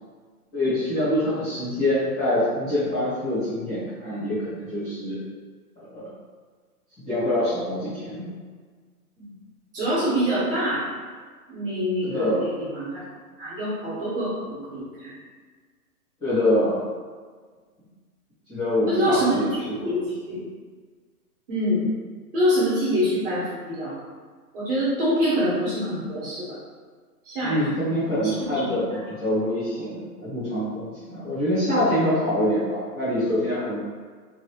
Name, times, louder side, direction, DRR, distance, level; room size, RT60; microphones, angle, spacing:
voice 1, 0.5-5.2 5.9-6.0 7.0-8.3 12.0-12.5 16.2-16.9 18.5-19.9 27.4-33.8, left 1 dB, 10° left, -15 dB, 1.0 m, -25 dB
voice 2, 9.7-10.8 11.5-13.0 13.4-15.1 18.9-19.4 19.7-20.0 20.3-20.4 21.5-21.8 22.3-23.9 24.5-26.5 27.2-27.6 28.5-29.0, equal, 35° right, -9 dB, 1.3 m, -25 dB
3.1 x 2.6 x 2.9 m, 1.5 s
hypercardioid pair, 155°, 47 cm